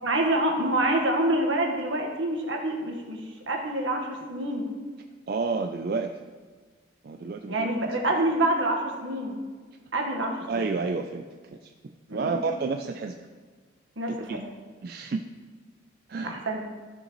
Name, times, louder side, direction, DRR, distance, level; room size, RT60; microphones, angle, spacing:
voice 1, 0.0-4.7 7.5-9.4 9.9-10.7 12.1-12.4 14.0-14.5 16.2-16.6, right 1 dB, 75° right, 2 dB, 1.4 m, -27 dB
voice 2, 5.3-6.1 7.0-7.7 10.5-11.2 11.6-11.7 12.1-13.2 14.1-14.4 14.8-15.2 16.1-16.4, right 4 dB, 50° right, 5 dB, 0.4 m, -30 dB
14.0 x 6.5 x 3.1 m, 1.5 s
head